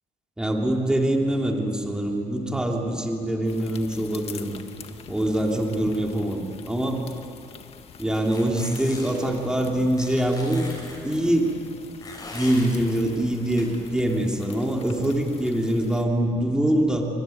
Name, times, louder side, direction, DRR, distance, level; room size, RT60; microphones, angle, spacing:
voice 1, 0.4-4.5 5.1-7.0 8.0-10.7 11.0-11.5 12.3-17.1, right 1 dB, 5° right, 0 dB, 3.2 m, -24 dB
sound 1, 3.4-16.0, left 7 dB, 50° left, 1.7 m, -43 dB
sound 2, 8.1-9.3 10.0-11.0 12.0-12.7 13.6-13.7, left 3 dB, 30° left, 6.9 m, -40 dB
24.5 x 24.0 x 9.4 m, 2.9 s
cardioid pair, 135°, 13 cm